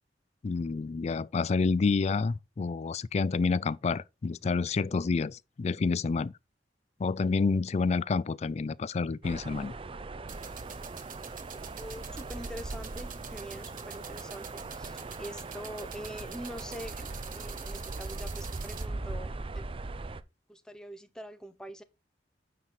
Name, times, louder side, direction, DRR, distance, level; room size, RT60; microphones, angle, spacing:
voice 1, 0.4-6.3 7.0-9.7, left 4 dB, 40° left, 0.4 m, -29 dB
sound 1, 9.2-20.2, right 3 dB, 30° right, 0.5 m, -40 dB
sound 2, 10.3-18.9, right 7 dB, 50° right, 1.2 m, -47 dB
voice 2, 11.8-19.6 20.5-21.8, equal, 5° left, 0.9 m, -44 dB
9.5 x 4.7 x 4.2 m
head